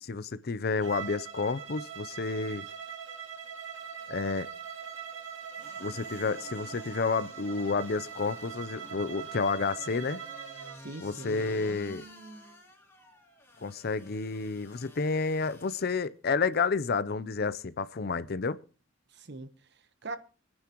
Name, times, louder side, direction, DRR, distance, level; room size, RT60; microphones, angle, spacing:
voice 1, 0.0-2.7 4.1-4.5 5.8-10.2 11.0-12.0 13.6-18.6, left 4 dB, 55° left, 0.6 m, -30 dB
Bowed string instrument, 0.7-10.8, right 7 dB, 80° right, 2.0 m, -42 dB
sound 1, 5.6-16.1 16.5-16.6, equal, 15° left, 3.2 m, -52 dB
voice 2, 10.7-11.7 19.1-20.2, right 3 dB, 60° right, 1.1 m, -42 dB
24.0 x 9.6 x 3.0 m
head